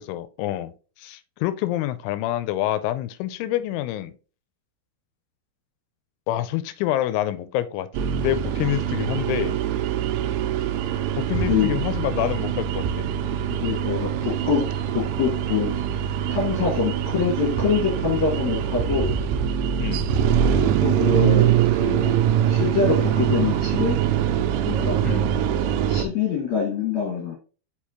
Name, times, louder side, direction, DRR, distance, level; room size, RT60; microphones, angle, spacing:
voice 1, 0.0-4.1 6.3-9.6 11.2-13.1 19.8-20.1 25.0-25.3, left 14 dB, 85° left, 3.0 m, -27 dB
sound 1, 7.9-26.1, right 9 dB, 85° right, 3.1 m, -23 dB
voice 2, 13.5-14.7 14.9-19.1 20.6-22.2 22.5-24.0 24.6-25.0 25.9-27.3, left 6 dB, 50° left, 2.4 m, -25 dB
6.4 x 5.6 x 2.9 m
omnidirectional pair, 5.5 m